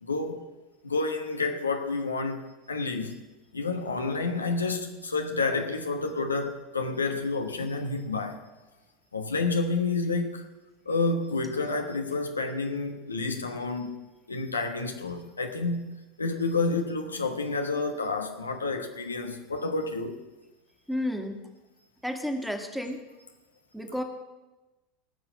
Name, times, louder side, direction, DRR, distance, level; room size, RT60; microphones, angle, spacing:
voice 1, 0.0-0.4 0.8-2.4 2.7-3.2 3.5-8.4 9.1-10.4 10.9-14.0 14.3-20.1, left 3 dB, 90° left, 1.2 m, -29 dB
voice 2, 20.9-21.4 22.0-23.0 23.7-24.0, left 1 dB, ahead, 1.9 m, -31 dB
17.5 x 6.0 x 7.7 m
hypercardioid pair, 85°, 0 cm